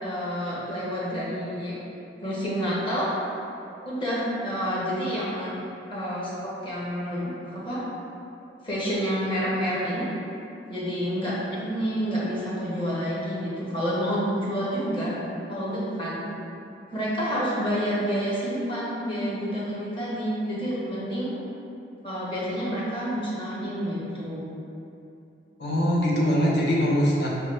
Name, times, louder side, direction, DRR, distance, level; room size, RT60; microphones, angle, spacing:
voice 1, 0.0-1.8 2.2-3.1 3.8-5.6 5.9-7.8 8.6-10.1 10.7-15.1 15.5-16.3 16.9-21.3 22.0-24.5, equal, 30° left, -8 dB, 0.9 m, -29 dB
voice 2, 25.6-27.3, equal, 65° left, -5 dB, 0.7 m, -22 dB
4.7 x 2.2 x 3.0 m, 2.7 s
head